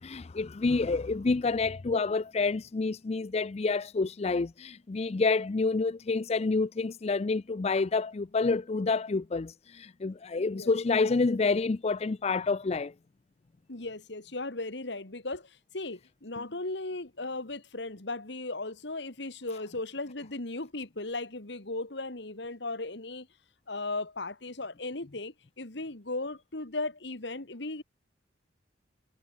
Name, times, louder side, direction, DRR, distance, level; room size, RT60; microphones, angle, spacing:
voice 1, 0.0-12.9, left 3 dB, 35° left, 0.4 m, -28 dB
voice 2, 13.7-15.5 15.7-23.3 23.7-27.8, left 2 dB, 65° left, 2.1 m, -36 dB
head